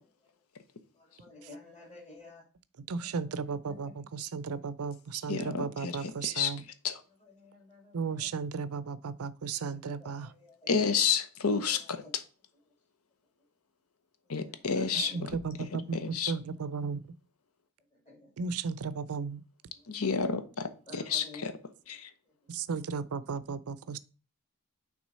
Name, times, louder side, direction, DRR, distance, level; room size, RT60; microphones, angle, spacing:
voice 1, 0.9-2.5 2.9-3.9 4.6-4.7 7.2-8.3 9.9-10.9 11.7-12.1 14.2-15.3 17.9-18.3 19.7-20.0 20.9-21.5 22.3-22.4 23.3-23.4, left 2 dB, 30° left, 2.4 m, -52 dB
voice 2, 2.9-6.6 7.9-10.3 15.0-17.0 18.4-19.4 22.5-24.0, right 5 dB, 70° right, 0.5 m, -35 dB
voice 3, 5.3-6.5 6.8-7.0 10.7-12.0 14.3-15.3 15.9-16.3 19.9-21.5 21.9-22.1, left 6 dB, 75° left, 0.9 m, -30 dB
6.1 x 3.7 x 5.4 m
head